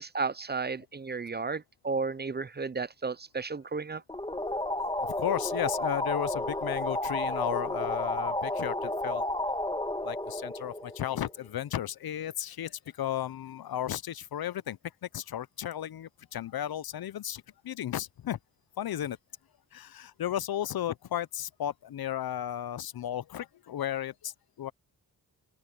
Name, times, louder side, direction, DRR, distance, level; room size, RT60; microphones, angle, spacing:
voice 1, 0.0-4.0, right 4 dB, 25° right, 0.6 m, -33 dB
sound 1, 4.1-11.5, left 1 dB, 15° left, 2.6 m, -32 dB
voice 2, 5.0-9.2 10.0-18.4 18.8-19.2 19.7-24.7, left 11 dB, 70° left, 0.7 m, -34 dB
open air
cardioid pair, 55°, 37 cm